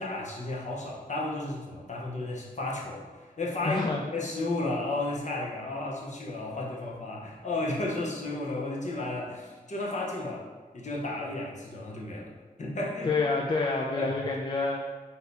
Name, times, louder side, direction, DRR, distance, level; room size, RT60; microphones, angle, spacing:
voice 1, 0.0-10.4 10.7-12.3 12.6-13.1 14.0-14.2, left 2 dB, 55° left, -3 dB, 0.8 m, -33 dB
voice 2, 3.6-4.0 13.0-14.8, left 3 dB, 30° left, -2 dB, 0.3 m, -28 dB
3.4 x 2.7 x 4.1 m, 1.4 s
wide cardioid pair, 100°, 15 cm